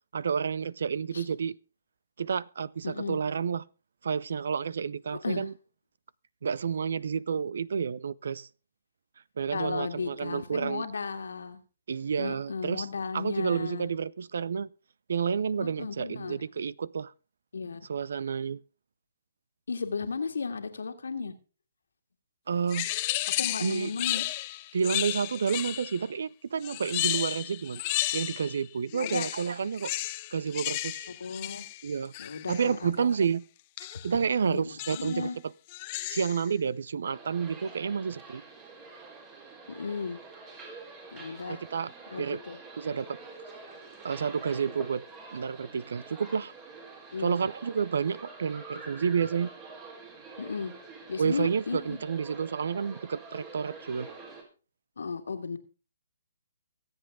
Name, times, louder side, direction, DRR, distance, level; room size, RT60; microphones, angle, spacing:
voice 1, 0.1-1.6 2.2-3.6 4.0-5.5 6.4-8.5 9.4-10.9 11.9-12.9 13.1-14.7 15.1-17.1 17.9-18.6 22.5-22.9 23.6-23.9 24.7-27.8 28.1-29.9 30.3-31.1 31.8-32.1 32.5-33.4 34.0-35.3 36.1-38.4 41.5-41.9 42.2-42.4 42.8-43.2 44.0-45.0 45.3-46.5 47.2-49.5 51.2-54.1, right 6 dB, 70° right, 0.5 m, -30 dB
voice 2, 2.8-3.2 5.2-5.5 9.5-11.6 12.2-13.9 15.6-16.4 17.5-17.8 19.7-21.3 23.4-24.2 29.0-29.3 31.2-31.7 32.2-33.1 34.4-35.4 39.7-40.2 41.1-41.6 42.1-42.6 47.1-47.4 50.4-50.7 51.1-52.0 55.0-55.6, left 5 dB, 80° left, 1.9 m, -35 dB
sound 1, 22.7-26.1 26.6-28.6 28.9-32.7 33.8-34.1 34.8-35.2 35.7-36.5, left 17 dB, 35° left, 0.6 m, -33 dB
sound 2, 37.0-54.4, right 3 dB, 25° right, 3.9 m, -47 dB
23.5 x 8.0 x 3.6 m
hypercardioid pair, 140°, 0 cm